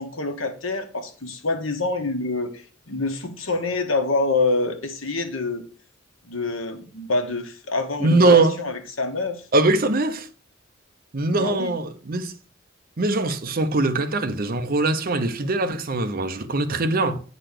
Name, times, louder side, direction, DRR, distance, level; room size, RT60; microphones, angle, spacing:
voice 1, 0.0-5.6 6.2-9.5 11.3-11.7, left 3 dB, 85° left, 1.4 m, -26 dB
voice 2, 8.0-8.6 9.5-10.3 11.1-12.3 13.0-17.2, right 2 dB, 45° right, 0.8 m, -21 dB
8.9 x 4.1 x 6.7 m
head